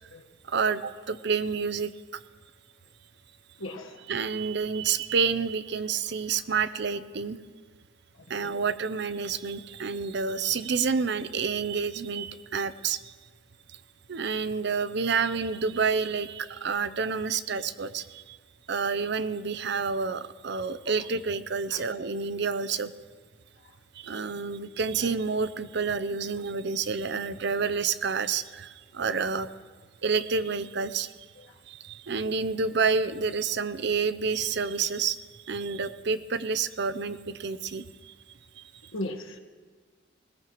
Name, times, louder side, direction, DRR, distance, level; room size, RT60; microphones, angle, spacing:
voice 1, 0.5-1.9 4.1-7.4 8.3-13.1 14.1-18.4 18.7-22.9 23.9-29.5 30.0-31.1 31.7-38.1 38.6-38.7, right 5 dB, 55° right, 13 dB, 0.6 m, -29 dB
voice 2, 3.6-4.0 8.3-8.4 21.7-21.8 38.9-39.4, left 1 dB, 85° left, 3 dB, 1.4 m, -36 dB
20.5 x 18.5 x 3.1 m, 1.5 s
head